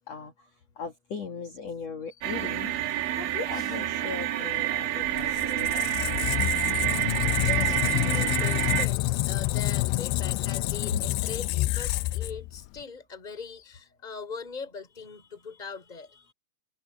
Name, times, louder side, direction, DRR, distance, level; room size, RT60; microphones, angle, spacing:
voice 1, 0.8-2.7 3.2-6.2 10.9-11.0, left 5 dB, 55° left, 1.9 m, -38 dB
sound 1, 2.2-8.9, right 13 dB, 80° right, 4.3 m, -28 dB
Squeak, 5.1-12.8, left 18 dB, 90° left, 2.3 m, -28 dB
voice 2, 7.3-16.3, left 5 dB, 10° left, 3.5 m, -41 dB
omnidirectional pair, 5.3 m